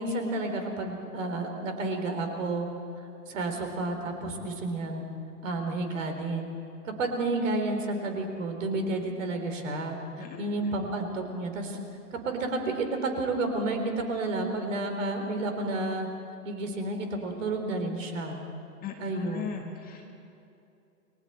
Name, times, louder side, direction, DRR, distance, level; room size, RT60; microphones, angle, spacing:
voice 1, 0.0-2.7 3.3-5.0 5.4-6.5 6.8-11.8 12.1-16.1 16.4-18.4 19.0-19.6, right 2 dB, 50° right, 5 dB, 3.8 m, -31 dB
voice 2, 18.8-20.1, left 7 dB, 20° left, 2 dB, 1.7 m, -39 dB
29.5 x 21.0 x 4.4 m, 2.7 s
figure-of-eight pair, 120°, 49 cm